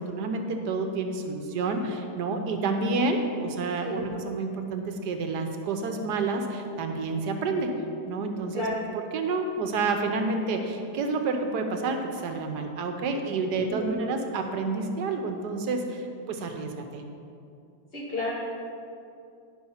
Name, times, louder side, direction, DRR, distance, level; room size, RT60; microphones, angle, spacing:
voice 1, 0.0-7.8 8.1-8.7 8.9-17.0, right 3 dB, 80° right, 5 dB, 1.3 m, -29 dB
voice 2, 13.5-14.0 17.9-18.3, left 1 dB, 40° left, -6 dB, 2.5 m, -32 dB
10.5 x 5.5 x 5.6 m, 2.5 s
omnidirectional pair, 1.8 m